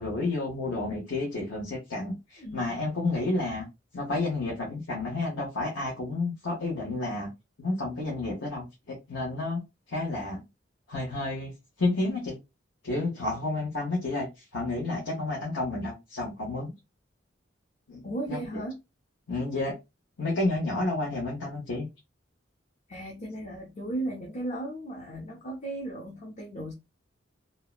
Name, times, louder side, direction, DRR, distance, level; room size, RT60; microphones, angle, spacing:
voice 1, 0.0-3.7 3.9-7.3 7.6-9.6 9.9-10.4 10.9-11.5 11.8-12.3 12.8-14.3 14.5-16.7 17.9-18.0 18.3-18.6 19.3-19.7 20.2-21.9, left 2 dB, 80° left, 1.0 m, -30 dB
voice 2, 18.0-18.8 22.9-26.7, right 1 dB, 40° left, 0.5 m, -36 dB
2.7 x 2.1 x 2.3 m
head